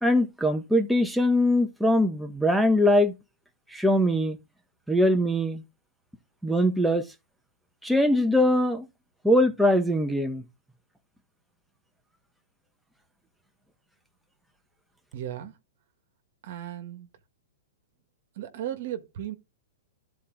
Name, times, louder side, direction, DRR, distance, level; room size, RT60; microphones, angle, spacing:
voice 1, 0.0-3.1 3.7-4.4 4.9-5.6 6.4-7.1 7.8-8.9 9.2-10.4, left 1 dB, ahead, 1.1 m, -22 dB
voice 2, 15.1-15.6 16.4-17.1 18.3-19.4, right 11 dB, 60° right, 1.4 m, -35 dB
12.0 x 4.3 x 3.9 m
hypercardioid pair, 135°, 0 cm